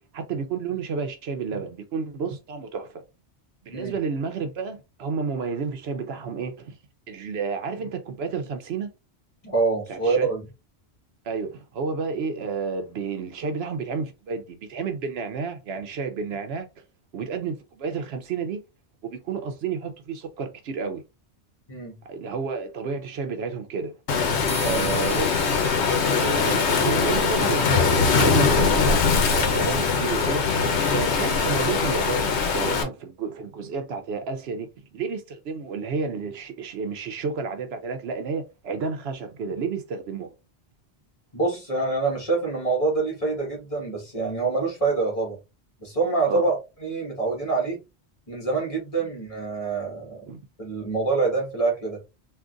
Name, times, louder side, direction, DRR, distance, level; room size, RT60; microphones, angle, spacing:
voice 1, 0.1-3.0 3.6-6.8 7.1-8.9 9.9-10.3 11.2-16.7 17.1-18.6 19.0-21.0 22.1-24.0 24.6-25.5 26.1-30.4 30.9-40.3 46.3-46.4 50.3-50.4, right 5 dB, 70° right, 0.8 m, -31 dB
voice 2, 9.4-10.4 21.7-22.0 24.6-25.0 41.3-45.4 45.8-47.8 48.3-50.3 50.6-52.0, right 3 dB, 30° left, 1.5 m, -26 dB
Waves surf, 24.1-32.8, left 5 dB, 90° left, 0.9 m, -22 dB
sound 1, 24.5-32.1, right 2 dB, 30° right, 1.3 m, -44 dB
3.7 x 2.5 x 2.4 m
omnidirectional pair, 1.1 m